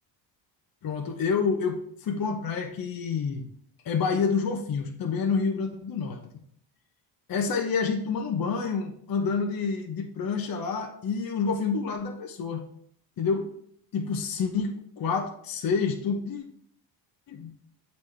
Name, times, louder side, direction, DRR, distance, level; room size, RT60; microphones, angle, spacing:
voice 1, 0.8-3.5 3.8-6.2 7.3-12.7 13.2-13.5 13.9-16.5 17.3-17.6, left 5 dB, 45° left, 3 dB, 0.9 m, -28 dB
8.1 x 4.1 x 3.3 m, 0.66 s
cardioid pair, 95°, 48 cm